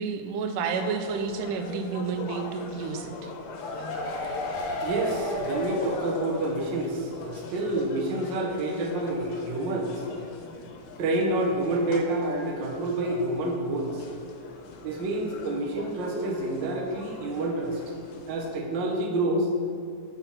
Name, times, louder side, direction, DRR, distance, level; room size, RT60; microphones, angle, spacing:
voice 1, 0.0-3.3, right 5 dB, 80° right, 7 dB, 2.1 m, -30 dB
sound 1, 0.6-18.6, left 4 dB, 90° left, 2.5 m, -42 dB
sound 2, 3.2-6.9 7.2-7.3 7.6-7.7, left 1 dB, 60° left, 1.9 m, -33 dB
voice 2, 4.8-10.0 11.0-14.0 14.8-17.8 18.3-19.5, right 2 dB, 65° right, 0 dB, 1.1 m, -28 dB
8.8 x 5.8 x 5.8 m, 2.3 s
omnidirectional pair, 3.7 m